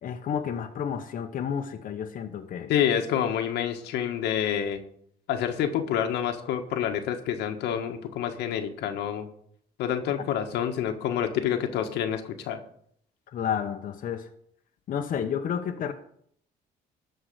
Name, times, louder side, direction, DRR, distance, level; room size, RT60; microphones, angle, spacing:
voice 1, 0.0-2.7 13.3-14.3 14.9-15.9, left 8 dB, 55° left, 5 dB, 1.0 m, -31 dB
voice 2, 2.7-4.8 5.3-9.3 9.8-12.6, left 9 dB, 85° left, 6 dB, 1.5 m, -28 dB
13.0 x 4.7 x 7.9 m, 0.67 s
cardioid pair, 110°, 17 cm